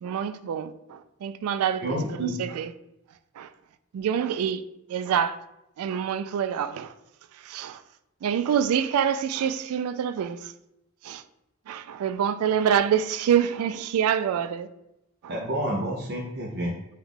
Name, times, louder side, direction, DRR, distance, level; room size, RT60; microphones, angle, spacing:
voice 1, 0.0-2.7 3.4-3.5 3.9-4.6 4.9-5.4 5.8-6.9 7.3-7.8 8.2-10.5 11.0-11.2 11.7-14.7 15.2-15.3, right 8 dB, 85° right, 0.3 m, -26 dB
voice 2, 1.8-2.4 15.3-16.7, right 1 dB, 50° right, 0.7 m, -29 dB
5.5 x 2.3 x 3.6 m
head